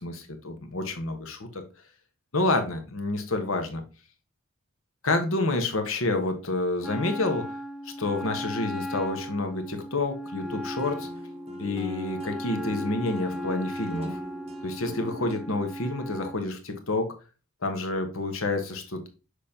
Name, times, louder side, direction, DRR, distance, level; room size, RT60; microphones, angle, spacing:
voice 1, 0.0-1.6 2.3-3.8 5.0-7.4 7.8-11.1 11.6-14.2 14.6-17.1 17.6-19.1, left 2 dB, 65° left, 6 dB, 1.2 m, -29 dB
Wind instrument woodwind instrument, 6.8-16.4, equal, ahead, 0.4 m, -37 dB
sound 1, 10.4-15.4, equal, 25° right, 0.9 m, -39 dB
6.6 x 5.1 x 2.8 m, 0.32 s
head